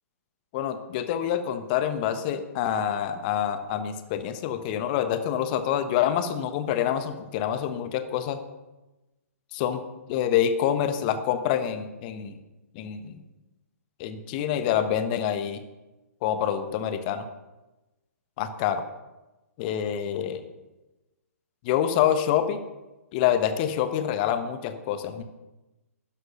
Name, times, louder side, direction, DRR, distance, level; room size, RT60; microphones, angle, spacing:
voice 1, 0.5-8.4 9.5-9.8 10.1-12.4 12.7-13.2 14.0-15.6 16.2-17.3 18.4-18.8 19.6-20.5 21.6-22.6 23.1-25.2, left 10 dB, 35° left, 10 dB, 1.2 m, -26 dB
13.0 x 9.9 x 5.6 m, 1.1 s
figure-of-eight pair, 120°, 8 cm